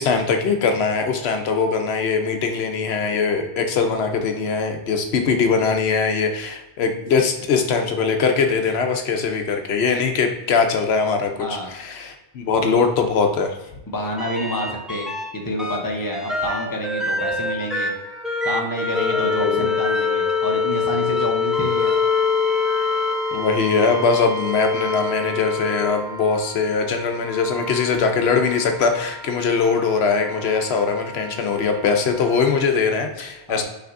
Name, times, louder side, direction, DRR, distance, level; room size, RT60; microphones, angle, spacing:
voice 1, 0.0-13.6 19.4-19.7 23.3-33.6, left 5 dB, 70° left, 5 dB, 0.9 m, -21 dB
voice 2, 13.9-18.0 18.4-21.9 33.5-33.6, left 1 dB, 20° left, 0 dB, 0.7 m, -28 dB
sound 1, 14.2-15.3 15.6-26.4 27.2-28.8 30.5-30.6, left 4 dB, ahead, 0.3 m, -25 dB
Wind instrument woodwind instrument, 17.6-32.7, left 1 dB, 20° right, 0.9 m, -41 dB
5.8 x 3.3 x 2.5 m, 0.96 s
omnidirectional pair, 1.1 m